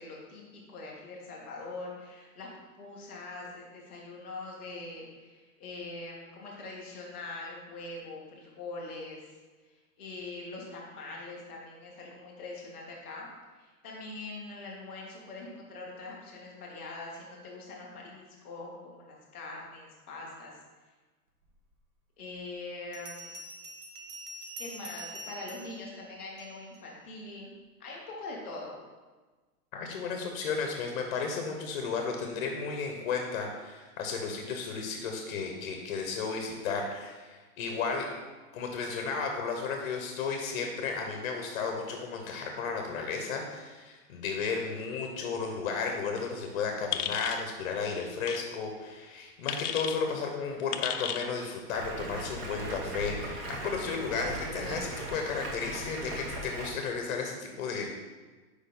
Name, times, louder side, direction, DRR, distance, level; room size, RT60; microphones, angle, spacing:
voice 1, 0.0-2.5 2.8-9.3 10.0-13.3 13.6-20.5 22.2-23.3 24.6-27.5 27.8-28.8, left 2 dB, 10° left, -14 dB, 0.3 m, -43 dB
Bell, 21.7-21.8 22.9-26.8, right 2 dB, 80° right, 1.4 m, -45 dB
voice 2, 29.7-38.1 38.5-57.9, left 5 dB, 40° left, 2 dB, 0.8 m, -34 dB
sound 1, 46.9-47.5 48.2-48.4 49.5-50.0 50.7-51.3, left 10 dB, 75° left, 0.6 m, -33 dB
Stream, 51.7-56.7, right 2 dB, 40° right, 0.9 m, -38 dB
4.9 x 4.4 x 5.2 m, 1.3 s
hypercardioid pair, 155°, 46 cm